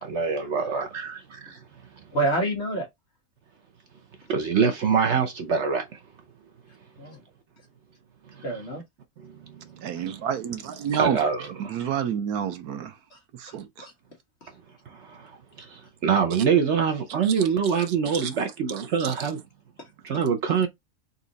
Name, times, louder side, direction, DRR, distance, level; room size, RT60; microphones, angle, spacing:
voice 1, 0.0-1.6 4.3-6.0 8.3-8.4 9.2-10.3 11.0-11.9 14.9-19.4 20.0-20.7, right 6 dB, 60° right, 0.9 m, -25 dB
voice 2, 2.1-2.9 7.0-7.2 8.4-8.8 13.1-13.2 13.5-13.9 19.8-19.9, right 2 dB, 50° left, 1.5 m, -28 dB
voice 3, 9.8-11.2 11.7-12.9 13.4-13.7 17.2-17.3 18.1-18.3 19.0-19.1, right 8 dB, 85° right, 1.2 m, -29 dB
4.1 x 2.4 x 3.9 m
omnidirectional pair, 1.6 m